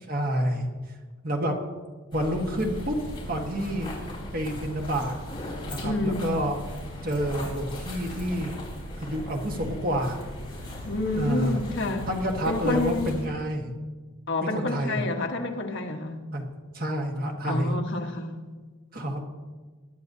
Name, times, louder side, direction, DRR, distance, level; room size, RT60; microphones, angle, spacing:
voice 1, 0.1-0.7 1.2-1.6 2.1-3.0 3.3-3.9 4.3-5.1 5.6-6.6 7.0-8.6 9.0-10.2 10.7-10.8 11.1-11.6 12.0-13.7 14.4-15.1 16.3-17.8 18.9-19.2, equal, 40° right, 2 dB, 1.4 m, -28 dB
sound 1, 2.1-13.3, left 1 dB, 20° left, 4.0 m, -38 dB
voice 2, 5.8-6.3 10.8-12.1 12.5-13.1 14.3-16.2 17.4-18.4, left 2 dB, 55° left, 2 dB, 1.3 m, -28 dB
22.0 x 10.5 x 2.8 m, 1.4 s
head